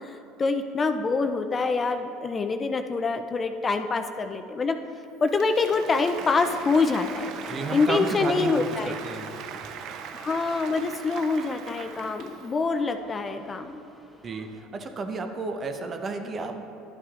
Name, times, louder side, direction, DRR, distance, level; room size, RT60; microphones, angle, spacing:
voice 1, 0.0-4.8 5.2-7.3 7.7-8.9 10.1-13.8, left 4 dB, 30° left, 7 dB, 0.4 m, -25 dB
Applause, 5.2-12.6, right 8 dB, 60° right, 0.4 m, -40 dB
sound 1, 5.7-14.6, equal, 5° right, 0.9 m, -46 dB
voice 2, 7.5-9.3 14.2-14.5 14.7-16.6, right 3 dB, 35° right, 6 dB, 0.7 m, -32 dB
11.0 x 8.5 x 2.5 m, 2.8 s
supercardioid pair, 90°, 0 cm